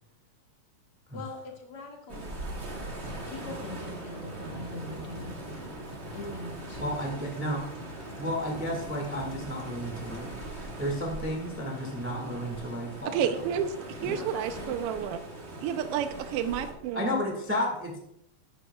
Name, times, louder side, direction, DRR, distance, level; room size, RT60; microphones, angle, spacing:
voice 1, 1.1-2.9 3.2-5.3 6.1-6.8 14.0-14.7, left 2 dB, 55° left, 0 dB, 2.6 m, -42 dB
sound 1, 2.1-16.7, right 1 dB, 30° right, 1.2 m, -41 dB
sound 2, 4.5-10.8, left 2 dB, 75° left, 2.2 m, -50 dB
voice 2, 6.8-7.6 8.2-10.3 10.5-13.1 14.0-14.2 16.9-18.0, equal, 5° right, 0 dB, 0.9 m, -32 dB
voice 3, 13.0-15.2 15.6-17.1, right 8 dB, 80° right, 8 dB, 1.3 m, -30 dB
12.5 x 10.5 x 2.3 m, 0.82 s
omnidirectional pair, 3.3 m